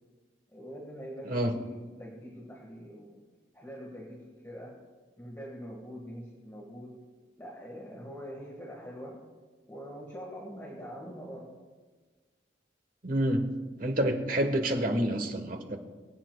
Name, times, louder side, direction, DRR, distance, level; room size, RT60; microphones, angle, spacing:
voice 1, 0.5-3.2 3.5-4.7 5.2-6.9 7.4-9.2 9.7-11.5, equal, 15° left, -3 dB, 1.6 m, -44 dB
voice 2, 13.0-13.5 13.8-15.8, right 1 dB, 50° right, 5 dB, 1.2 m, -28 dB
23.0 x 8.8 x 2.3 m, 1.4 s
head